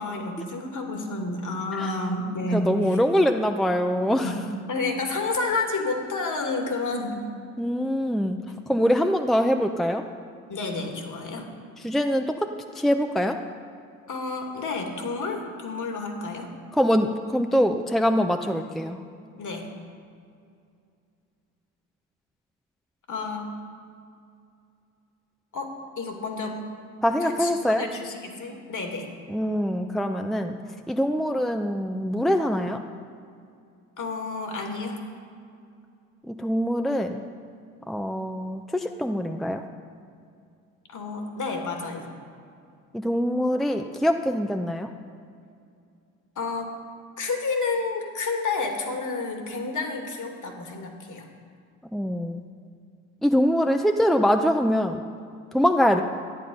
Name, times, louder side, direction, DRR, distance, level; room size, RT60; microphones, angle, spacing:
voice 1, 0.0-2.7 4.2-7.2 10.5-11.5 14.1-16.5 19.4-19.7 23.1-23.5 25.5-25.7 26.0-26.6 27.2-29.1 34.0-35.0 40.9-42.0 46.4-46.7 47.2-51.3, left 3 dB, 45° left, 3 dB, 2.6 m, -30 dB
voice 2, 2.5-4.3 7.6-8.4 8.7-10.0 11.8-12.5 12.7-13.4 16.7-19.0 27.0-27.8 29.3-30.6 30.9-32.8 36.3-37.2 37.9-39.6 42.9-44.9 51.9-52.4 53.2-55.0 55.5-56.0, equal, ahead, 6 dB, 0.7 m, -23 dB
12.5 x 10.0 x 5.5 m, 2.4 s
hypercardioid pair, 50°, 40 cm